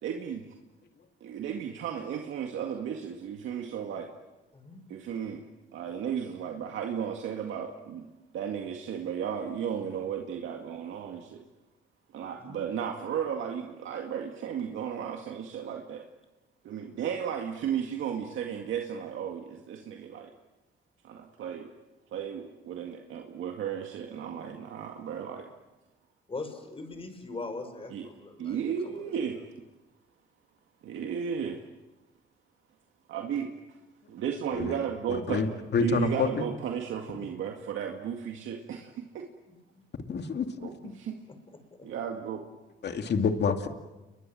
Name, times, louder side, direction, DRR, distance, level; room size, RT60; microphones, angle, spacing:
voice 1, 0.0-0.4 1.2-4.1 4.9-5.4 5.7-8.1 8.3-11.4 12.1-16.0 16.6-20.3 21.0-21.7 22.1-25.5 27.9-28.1 28.4-29.4 30.8-31.6 33.1-33.5 34.1-35.4 35.8-39.3 40.6-41.2 41.8-42.4, right 8 dB, 80° right, 3 dB, 2.1 m, -34 dB
voice 2, 26.3-29.1 39.5-39.6 41.3-41.4 41.8-41.9, left 3 dB, 30° left, 8 dB, 5.6 m, -41 dB
voice 3, 35.1-35.5 35.7-36.4 40.1-40.9 42.8-43.7, left 5 dB, 60° left, 6 dB, 2.6 m, -28 dB
30.0 x 22.5 x 7.7 m, 1.1 s
cardioid pair, 90°, 20 cm